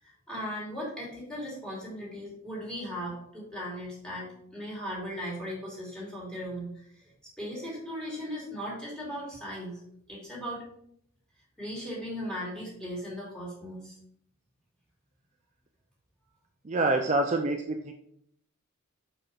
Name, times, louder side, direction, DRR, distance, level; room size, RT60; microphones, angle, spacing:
voice 1, 0.3-7.1 7.4-9.8 10.1-10.6 11.6-14.0, equal, 5° left, -6 dB, 2.8 m, -37 dB
voice 2, 16.6-17.9, right 2 dB, 30° right, 3 dB, 0.5 m, -26 dB
5.9 x 5.4 x 4.2 m, 0.69 s
head